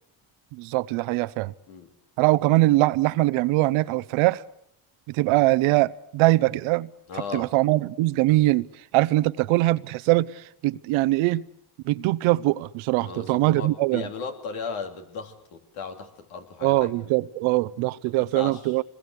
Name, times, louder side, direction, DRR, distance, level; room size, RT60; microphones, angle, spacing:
voice 1, 0.5-1.5 2.2-4.4 5.1-6.9 7.3-8.7 8.9-11.4 11.8-14.1 16.6-18.8, right 18 dB, 85° right, 0.9 m, -22 dB
voice 2, 7.1-7.5 13.0-16.9 18.2-18.8, left 5 dB, 85° left, 3.3 m, -36 dB
26.0 x 21.5 x 8.1 m
supercardioid pair, 75°, 47 cm